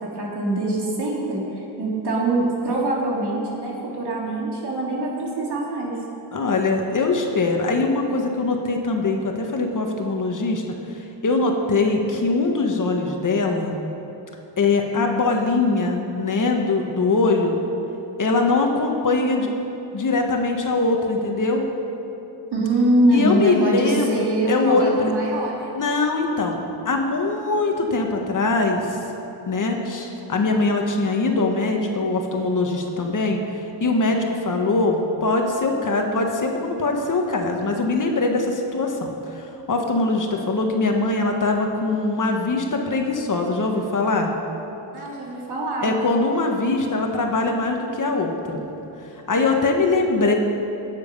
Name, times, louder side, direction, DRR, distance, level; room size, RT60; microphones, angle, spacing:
voice 1, 0.1-6.0 22.5-25.7 44.9-45.9, right 1 dB, 55° right, -4 dB, 3.3 m, -23 dB
voice 2, 6.3-13.7 14.6-17.6 18.2-19.5 19.9-21.6 23.1-25.1 25.7-26.6 26.8-29.0 29.4-44.3 45.8-48.7 49.3-50.3, left 3 dB, 40° left, 2 dB, 1.5 m, -22 dB
17.5 x 7.6 x 5.5 m, 2.9 s
cardioid pair, 105°, 46 cm